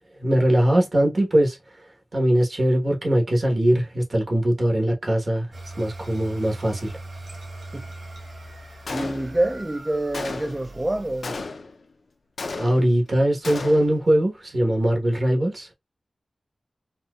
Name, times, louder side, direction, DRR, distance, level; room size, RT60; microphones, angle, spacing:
voice 1, 0.2-1.6 2.1-7.0 12.6-15.7, right 1 dB, 40° right, 1.2 m, -21 dB
sound 1, 5.5-11.2, right 2 dB, 75° right, 1.4 m, -40 dB
Gunshot gunfire, 8.9-9.6 10.1-10.7 11.2-11.8 12.4-13.0 13.4-14.0, left 3 dB, 70° left, 0.5 m, -33 dB
voice 2, 8.9-11.4, right 1 dB, 15° right, 0.3 m, -26 dB
4.1 x 2.2 x 2.3 m
wide cardioid pair, 110°, 0 cm